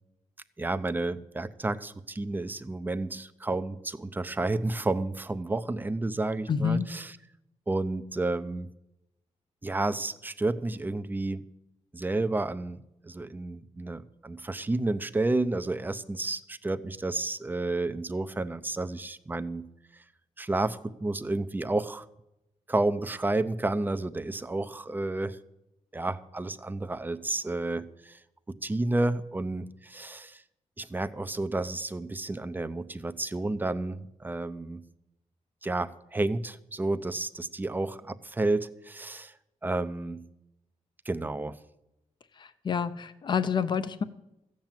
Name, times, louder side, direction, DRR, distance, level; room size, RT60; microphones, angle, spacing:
voice 1, 0.6-7.2 7.7-8.7 9.6-11.4 11.9-19.7 19.9-20.0 20.4-22.1 22.7-25.4 25.9-28.2 28.5-30.4 30.8-34.8 35.6-39.3 39.6-40.2 41.1-41.6, right 2 dB, 15° right, 13 dB, 0.6 m, -31 dB
voice 2, 6.5-6.9 42.4-44.0, left 6 dB, 40° left, 13 dB, 0.6 m, -28 dB
15.0 x 7.5 x 8.9 m, 0.87 s
wide cardioid pair, 175°, 12 cm